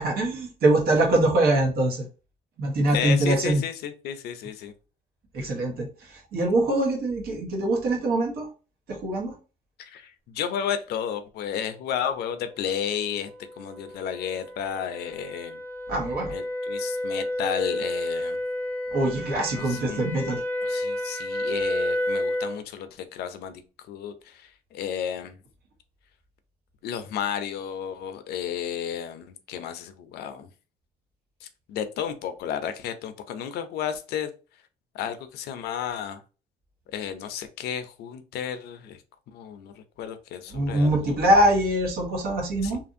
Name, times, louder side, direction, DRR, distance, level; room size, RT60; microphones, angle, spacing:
voice 1, 0.0-2.1 2.6-3.6 5.3-8.5 8.9-9.3 15.9-16.3 18.9-20.4 40.5-42.8, right 1 dB, 65° right, 1 dB, 1.1 m, -23 dB
voice 2, 2.9-4.7 9.8-13.3 13.6-15.6 16.3-18.4 19.5-20.1 20.6-23.5 23.9-25.4 26.8-30.5 31.4-34.3 34.9-36.2 36.9-39.0 39.3-41.2 42.6-42.7, left 8 dB, 70° left, 9 dB, 0.5 m, -32 dB
sound 1, 12.7-22.6, left 1 dB, 10° left, 0.5 m, -31 dB
2.8 x 2.5 x 2.5 m, 0.33 s
cardioid pair, 110°, 17 cm